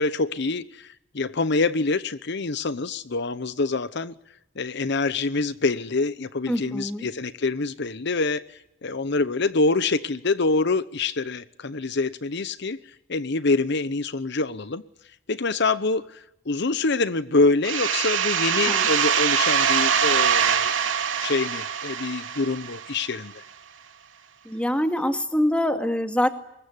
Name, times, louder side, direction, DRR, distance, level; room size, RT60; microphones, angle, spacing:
voice 1, 0.0-4.1 4.6-12.8 13.1-14.8 15.3-20.7 21.2-23.4, left 3 dB, 60° left, 0.9 m, -25 dB
voice 2, 6.5-7.1 18.7-18.9 24.5-26.3, left 1 dB, 5° left, 2.2 m, -24 dB
sound 1, 17.6-23.2, right 7 dB, 85° right, 3.1 m, -23 dB
25.0 x 22.0 x 9.9 m
head